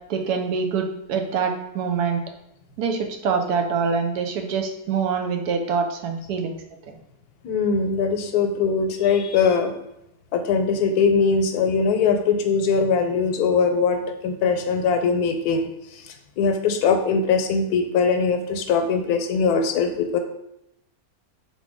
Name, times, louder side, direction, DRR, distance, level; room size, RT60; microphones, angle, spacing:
voice 1, 0.1-2.2 2.8-6.6 6.9-7.0, right 5 dB, 85° right, 5 dB, 1.1 m, -25 dB
voice 2, 7.4-9.7 10.3-15.7 15.9-16.0 16.4-20.2, left 5 dB, 85° left, 6 dB, 1.1 m, -21 dB
4.1 x 3.1 x 3.5 m, 0.83 s
omnidirectional pair, 1.6 m